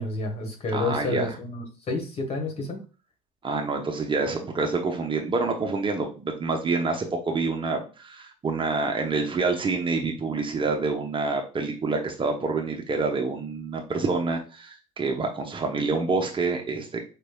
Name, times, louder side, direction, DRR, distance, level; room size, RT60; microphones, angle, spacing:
voice 1, 0.0-2.8, left 3 dB, 35° left, 3 dB, 1.5 m, -30 dB
voice 2, 0.7-1.4 3.4-17.0, right 4 dB, 25° right, 2 dB, 0.9 m, -27 dB
5.2 x 3.2 x 2.3 m, 0.34 s
figure-of-eight pair, 60°, 19 cm